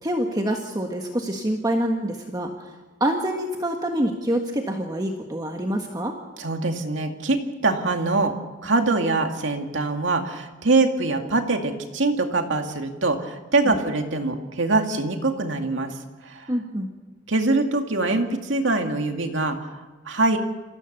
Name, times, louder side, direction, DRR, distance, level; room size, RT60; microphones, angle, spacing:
voice 1, 0.0-2.5 3.0-6.1 13.6-13.7 16.5-16.9, right 1 dB, 20° right, 2 dB, 1.6 m, -26 dB
voice 2, 6.4-8.3 8.6-16.0 16.2-16.5 17.3-20.4, right 3 dB, 75° right, 4 dB, 2.4 m, -23 dB
28.5 x 15.5 x 6.8 m, 1.3 s
head